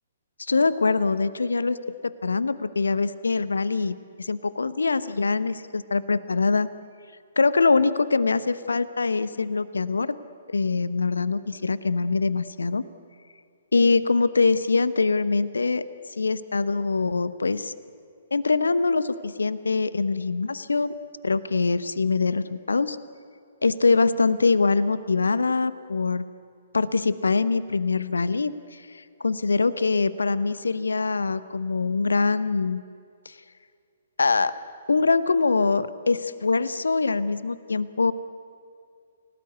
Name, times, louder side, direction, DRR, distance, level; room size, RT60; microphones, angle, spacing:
voice 1, 0.4-6.7 7.4-10.2 10.5-12.8 13.7-15.8 16.2-17.7 18.3-20.9 21.2-23.0 23.6-26.3 26.7-32.8 33.2-33.3 34.2-34.5 34.9-38.1, left 4 dB, 70° left, 16 dB, 0.9 m, -23 dB
29.0 x 18.5 x 8.2 m, 2.4 s
figure-of-eight pair, 125°, 0 cm